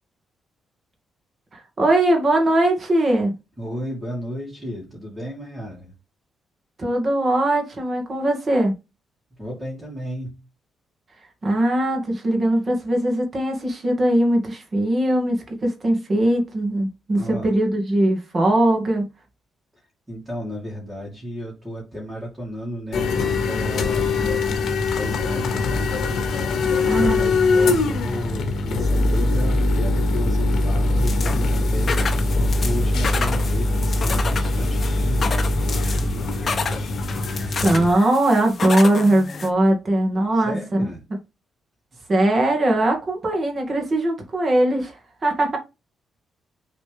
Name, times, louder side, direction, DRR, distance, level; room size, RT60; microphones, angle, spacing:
voice 1, 1.5-3.3 6.8-8.7 11.4-19.0 26.9-27.3 37.6-40.8 42.1-45.0 45.2-45.6, right 1 dB, 30° right, 2.2 m, -20 dB
voice 2, 3.6-5.9 9.4-10.4 17.2-17.5 20.1-25.9 26.7-32.1 32.6-36.6 40.3-41.0, equal, 15° right, 2.7 m, -33 dB
sound 1, 22.9-37.9, left 2 dB, 65° left, 1.5 m, -22 dB
sound 2, 31.0-39.5, left 5 dB, 35° left, 1.0 m, -30 dB
6.9 x 4.1 x 3.5 m
cardioid pair, 155°, 0 cm